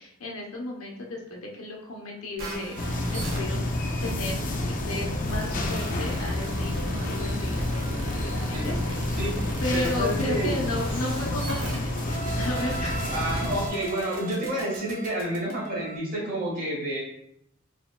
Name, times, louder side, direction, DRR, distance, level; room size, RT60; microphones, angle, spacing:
voice 1, 0.0-3.6 4.0-7.9 8.2-9.0 9.6-13.0, left 2 dB, 80° left, -1 dB, 0.9 m, -34 dB
sound 1, 2.4-16.0, right 1 dB, 70° right, 1.1 m, -37 dB
sound 2, 2.8-13.7, left 1 dB, 40° left, 0.5 m, -29 dB
voice 2, 9.7-10.6 13.1-17.0, right 1 dB, 40° right, -5 dB, 1.5 m, -29 dB
4.4 x 3.5 x 2.3 m, 0.75 s
head